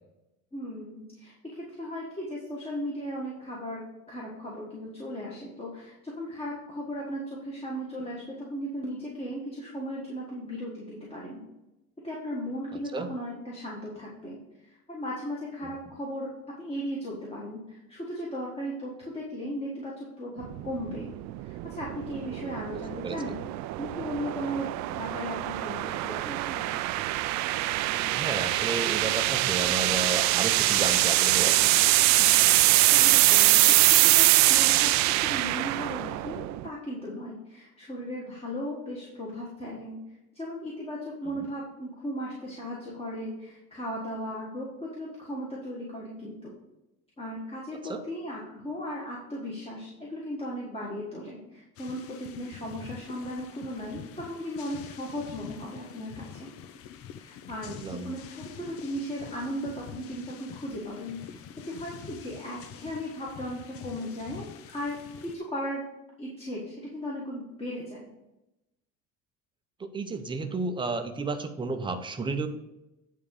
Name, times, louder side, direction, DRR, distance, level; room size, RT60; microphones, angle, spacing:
voice 1, 0.5-3.8 4.1-11.4 12.0-16.3 16.6-21.1 21.4-23.4 23.8-26.7 32.2-40.0 40.3-46.5 47.2-56.5 57.1-64.5 64.7-65.8 66.2-68.0, equal, 20° left, -5 dB, 1.7 m, -37 dB
sound 1, 20.4-36.7, right 17 dB, 65° right, 0.4 m, -24 dB
voice 2, 27.9-31.7 47.8-48.0 57.6-58.1 69.8-72.5, right 3 dB, 15° right, 6 dB, 0.7 m, -32 dB
sound 2, 51.8-65.4, left 9 dB, 50° left, 0.6 m, -46 dB
9.4 x 3.7 x 6.5 m, 0.95 s
cardioid pair, 145°, 31 cm